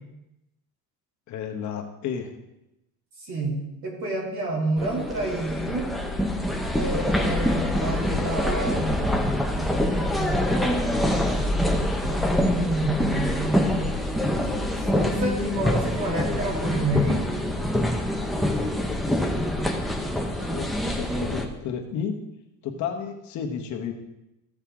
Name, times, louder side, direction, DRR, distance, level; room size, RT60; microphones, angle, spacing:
voice 1, 1.3-2.4 17.8-18.0 18.3-19.0 19.3-19.7 20.0-22.2 22.6-23.9, left 7 dB, 50° left, 3 dB, 1.1 m, -33 dB
voice 2, 3.2-5.9 6.7-8.9 9.5-12.2 12.5-14.7 14.9-17.2, right 2 dB, 50° right, -2 dB, 2.9 m, -30 dB
sound 1, 4.8-21.5, left 1 dB, ahead, 0.6 m, -25 dB
14.0 x 6.6 x 3.6 m, 0.91 s
cardioid pair, 175°, 37 cm